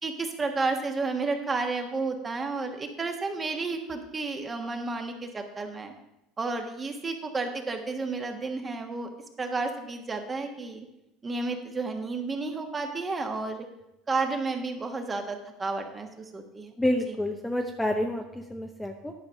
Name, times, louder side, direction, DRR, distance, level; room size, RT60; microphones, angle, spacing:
voice 1, 0.0-5.9 6.4-9.1 9.4-10.9 11.2-13.7 14.1-16.7, right 3 dB, 25° right, 5 dB, 1.4 m, -31 dB
voice 2, 16.8-19.1, left 1 dB, 5° left, 3 dB, 0.7 m, -29 dB
10.5 x 5.3 x 6.4 m, 0.88 s
supercardioid pair, 110°, 0 cm